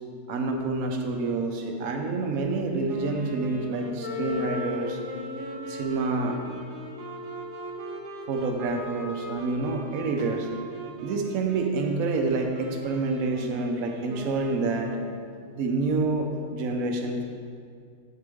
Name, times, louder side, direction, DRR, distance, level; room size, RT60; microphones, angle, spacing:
voice 1, 0.3-5.0 5.7-6.4 8.3-10.5 11.0-15.0 15.5-17.2, right 3 dB, 65° right, 3 dB, 1.1 m, -28 dB
Wind instrument woodwind instrument, 2.8-15.3, right 2 dB, 85° right, 1.4 m, -39 dB
Wind instrument woodwind instrument 2, 4.0-9.1, left 7 dB, 90° left, 1.3 m, -39 dB
7.6 x 6.7 x 3.5 m, 2.2 s
omnidirectional pair, 1.7 m